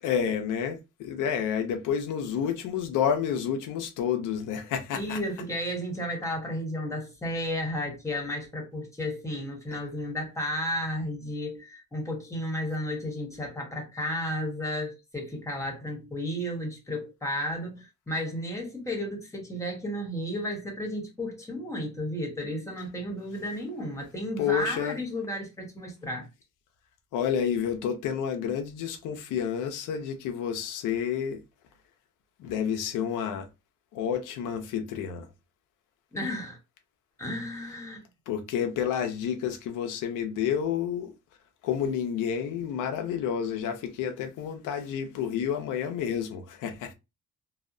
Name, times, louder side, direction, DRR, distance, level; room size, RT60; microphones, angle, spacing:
voice 1, 0.0-5.2 24.4-25.0 27.1-31.4 32.4-33.5 33.9-35.3 38.3-41.1 41.6-46.9, left 8 dB, 90° left, 0.5 m, -29 dB
voice 2, 4.9-26.3 36.1-36.6 37.2-38.0, equal, 10° left, 1.1 m, -33 dB
2.7 x 2.0 x 2.6 m
cardioid pair, 90°, 30 cm